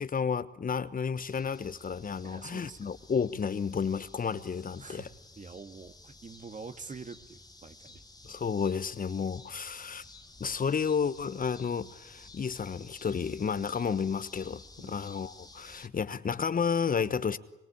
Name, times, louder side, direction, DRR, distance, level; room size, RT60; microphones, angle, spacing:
voice 1, 0.0-5.1 8.2-10.0 10.4-17.4, left 6 dB, 45° left, 1.2 m, -31 dB
crickets parking lot +skyline roar bassy and distant voice, 1.2-15.9, left 2 dB, 20° left, 1.7 m, -53 dB
voice 2, 2.2-2.9 4.8-5.1 5.4-8.0 14.8-15.0, right 4 dB, 40° right, 2.2 m, -46 dB
25.5 x 24.0 x 8.7 m
hypercardioid pair, 40°, 21 cm